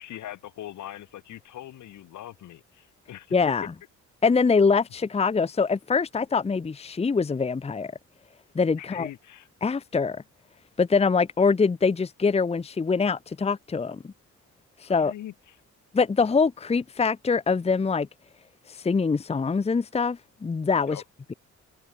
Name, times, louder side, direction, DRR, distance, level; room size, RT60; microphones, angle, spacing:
voice 1, 0.0-3.3 8.8-9.5 15.0-15.6 20.9-21.0, left 12 dB, 75° left, 3.0 m, -41 dB
voice 2, 3.3-3.7 4.2-7.9 8.5-9.1 9.6-10.2 10.8-14.1 14.8-15.1 15.9-18.1 18.7-21.0, left 5 dB, 20° left, 0.8 m, -24 dB
cardioid pair, 90°, 30 cm